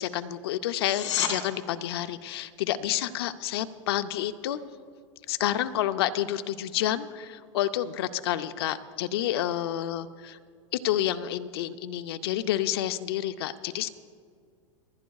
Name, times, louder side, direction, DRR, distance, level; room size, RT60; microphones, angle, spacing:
voice 1, 0.0-4.6 5.3-10.4 10.7-13.9, left 12 dB, 50° left, 10 dB, 0.5 m, -29 dB
sound 1, 0.7-1.3 12.7-12.8, left 10 dB, 65° left, 3.2 m, -29 dB
28.5 x 10.5 x 2.3 m, 2.1 s
supercardioid pair, 180°, 16 cm